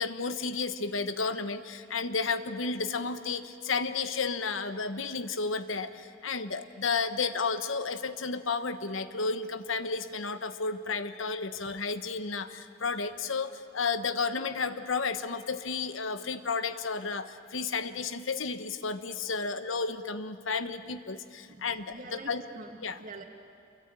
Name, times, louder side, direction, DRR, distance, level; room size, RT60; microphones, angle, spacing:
voice 1, 0.0-22.4 22.8-23.0, left 4 dB, 85° left, 10 dB, 1.1 m, -32 dB
voice 2, 21.5-23.2, right 2 dB, 45° right, 3 dB, 2.4 m, -46 dB
27.5 x 23.0 x 9.0 m, 2.4 s
head